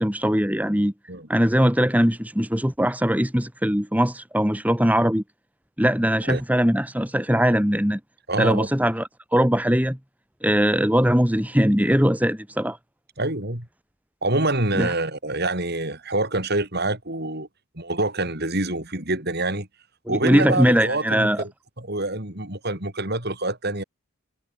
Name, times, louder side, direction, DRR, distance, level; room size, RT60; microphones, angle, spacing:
voice 1, 0.0-0.9 1.3-5.2 5.8-8.0 8.4-10.0 10.4-12.8 14.7-14.9 20.1-21.4, equal, 5° right, 2.4 m, -21 dB
voice 2, 8.3-8.7 13.2-13.7 14.2-17.5 17.8-19.7 20.1-21.5 21.8-23.8, right 2 dB, 50° right, 5.8 m, -26 dB
head